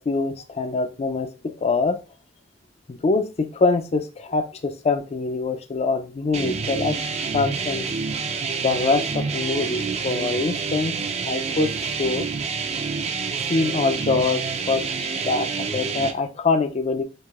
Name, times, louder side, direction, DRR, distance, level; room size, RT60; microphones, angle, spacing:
voice 1, 0.0-2.0 2.9-7.0 7.3-7.9 8.6-10.9 11.3-12.3 13.5-17.0, left 3 dB, 35° left, 9 dB, 0.4 m, -24 dB
sound 1, 6.3-16.1, right 5 dB, 35° right, 0.4 m, -28 dB
4.7 x 2.6 x 2.4 m, 0.33 s
head